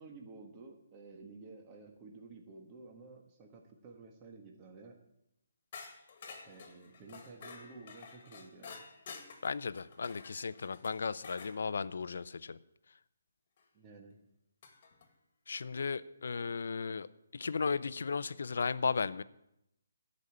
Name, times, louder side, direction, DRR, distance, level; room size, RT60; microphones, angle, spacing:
voice 1, 0.0-5.0 6.4-8.8 13.7-14.2, right 3 dB, 20° right, 2 dB, 1.4 m, -52 dB
sound 1, 5.7-11.6 13.6-13.7 14.6-15.1, left 5 dB, 40° left, 2.0 m, -51 dB
voice 2, 9.4-12.6 15.5-17.1 17.3-19.2, left 5 dB, 70° left, 16 dB, 0.5 m, -35 dB
13.0 x 5.3 x 8.6 m, 0.81 s
hypercardioid pair, 165°, 0 cm